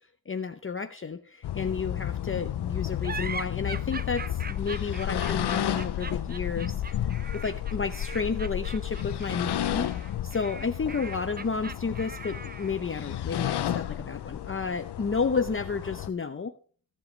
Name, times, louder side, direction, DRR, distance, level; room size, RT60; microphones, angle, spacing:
voice 1, 0.3-7.0 7.3-16.5, left 5 dB, 30° left, 8 dB, 0.7 m, -31 dB
sound 1, 1.4-16.1, left 11 dB, 85° left, 0.6 m, -32 dB
sound 2, 3.0-12.9, right 4 dB, 25° right, 0.6 m, -41 dB
17.0 x 7.6 x 3.2 m, 0.43 s
wide cardioid pair, 75°, 39 cm